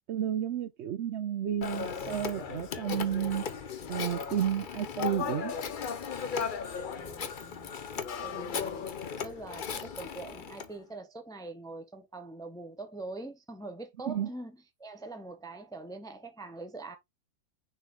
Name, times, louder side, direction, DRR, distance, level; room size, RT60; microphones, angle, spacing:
voice 1, 0.1-3.5 3.9-5.5 14.1-14.3, right 10 dB, 65° right, 0.8 m, -31 dB
Telephone, 1.6-10.7, left 6 dB, 45° left, 0.8 m, -36 dB
voice 2, 7.0-7.7 8.2-8.9 9.2-17.0, right 2 dB, 5° left, 0.6 m, -43 dB
6.4 x 4.3 x 3.5 m
omnidirectional pair, 1.4 m